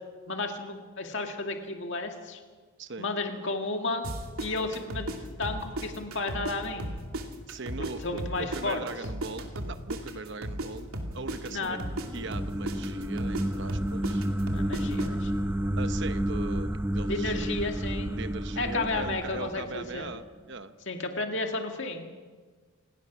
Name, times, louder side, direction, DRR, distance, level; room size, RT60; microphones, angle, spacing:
voice 1, 0.3-2.4 3.0-4.0 4.4-5.1 5.4-7.0 8.0-8.9 11.5-11.8 14.5-15.5 17.1-18.1 18.6-20.1 20.9-22.1, left 3 dB, 55° left, 3 dB, 2.2 m, -32 dB
sound 1, 4.0-6.5 6.8-10.7 10.9-15.1, right 1 dB, 80° right, 2.7 m, -35 dB
voice 2, 7.5-11.8 12.1-14.2 15.8-17.7 18.1-20.8, right 3 dB, 55° right, 10 dB, 0.9 m, -40 dB
sound 2, 11.0-20.3, right 1 dB, 10° right, 0.6 m, -31 dB
28.0 x 18.0 x 6.2 m, 1.5 s
head